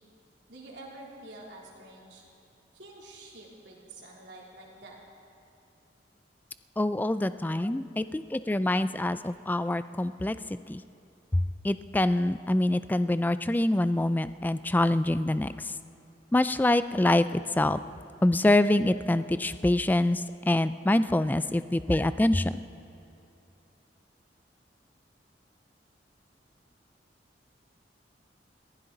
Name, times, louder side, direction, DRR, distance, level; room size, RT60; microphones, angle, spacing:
voice 1, 0.5-2.3 2.7-5.0, right 2 dB, 80° right, -3 dB, 3.3 m, -48 dB
voice 2, 6.8-10.8 11.3-15.7 16.3-17.8 18.2-22.6, left 1 dB, 10° left, 13 dB, 0.3 m, -25 dB
22.0 x 15.5 x 3.9 m, 2.8 s
head